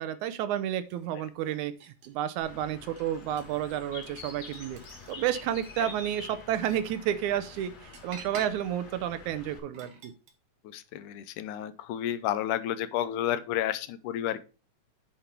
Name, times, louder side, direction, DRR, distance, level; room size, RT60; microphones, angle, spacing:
voice 1, 0.0-1.7 2.0-4.8 5.1-10.1, right 11 dB, 80° right, 12 dB, 1.9 m, -31 dB
sound 1, 0.8-2.3 2.8-3.6 4.0-5.1 5.5-10.3, right 4 dB, 55° right, 2.3 m, -50 dB
Bird, 2.4-9.6, left 4 dB, 55° left, 2.8 m, -47 dB
voice 2, 10.6-14.4, left 11 dB, 80° left, 13 dB, 2.1 m, -31 dB
8.9 x 5.2 x 4.3 m, 0.32 s
omnidirectional pair, 3.7 m